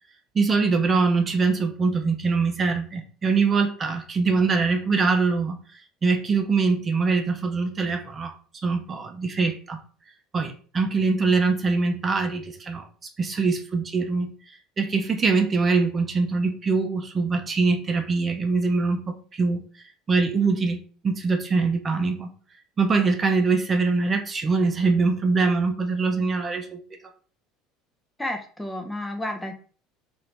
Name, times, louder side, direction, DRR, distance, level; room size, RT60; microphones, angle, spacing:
voice 1, 0.3-5.6 6.0-8.3 8.6-9.8 10.3-12.9 13.2-14.3 14.8-19.6 20.1-22.3 22.8-26.8, right 4 dB, 30° right, 5 dB, 0.6 m, -23 dB
voice 2, 28.2-29.5, left 1 dB, 10° left, 5 dB, 0.6 m, -31 dB
2.7 x 2.6 x 3.3 m, 0.41 s
supercardioid pair, 85°, 0 cm